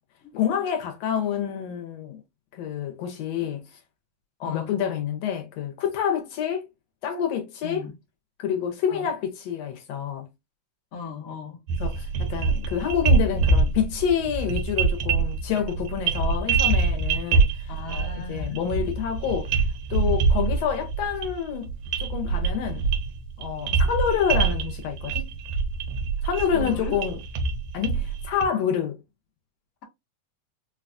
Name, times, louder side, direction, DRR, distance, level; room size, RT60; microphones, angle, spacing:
voice 1, 0.3-2.2 2.5-3.6 4.4-6.6 7.0-7.9 8.4-10.3 11.8-19.5 19.9-21.7 22.0-22.9 23.4-25.3 26.2-27.2 27.7-29.0, left 8 dB, 75° left, 1.7 m, -28 dB
voice 2, 7.6-8.0 8.9-9.1 10.9-11.7 17.7-18.6 26.5-27.0, left 4 dB, 90° left, 0.7 m, -37 dB
sound 1, 11.7-28.5, right 4 dB, 70° right, 1.6 m, -25 dB
4.6 x 2.3 x 2.5 m
omnidirectional pair, 3.4 m